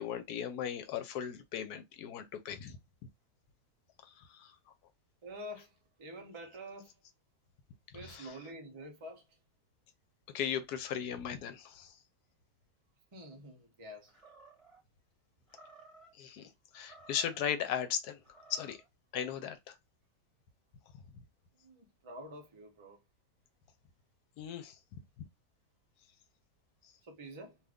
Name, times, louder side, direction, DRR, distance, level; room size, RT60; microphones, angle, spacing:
voice 1, 0.0-2.8 4.2-4.5 8.0-8.3 10.3-11.9 16.2-18.2 18.5-18.8 19.1-19.8 24.4-24.7, left 9 dB, 80° left, 1.1 m, -37 dB
voice 2, 5.2-7.0 7.9-9.4 13.1-14.1 21.6-23.0 27.0-27.6, equal, 40° right, 0.4 m, -48 dB
Animal, 14.1-14.8 15.5-16.1 16.7-17.5 18.2-18.9, right 2 dB, 25° right, 1.0 m, -57 dB
2.7 x 2.5 x 3.4 m
omnidirectional pair, 1.7 m